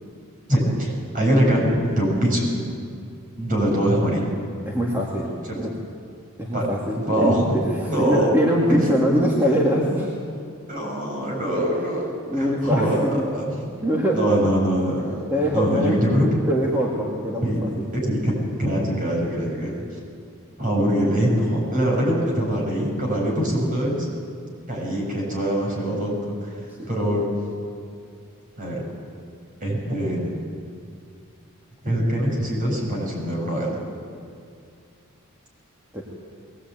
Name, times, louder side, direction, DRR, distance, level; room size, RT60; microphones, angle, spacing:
voice 1, 0.5-2.5 3.4-4.2 5.4-5.6 6.5-6.7 7.1-8.3 10.7-12.1 12.3-13.7 14.1-15.2 15.5-16.3 17.4-17.6 17.9-19.8 20.6-24.1 24.7-26.5 26.9-27.3 28.6-28.8 29.6-30.4 31.8-33.8, equal, 40° right, -2 dB, 7.5 m, -23 dB
voice 2, 4.7-5.3 5.6-5.7 6.4-10.1 11.6-11.7 12.3-13.3 13.8-14.2 15.3-16.0 16.5-17.9 26.8-26.9 35.9-36.0, equal, 10° right, -3 dB, 2.3 m, -23 dB
21.5 x 19.5 x 9.2 m, 2.4 s
head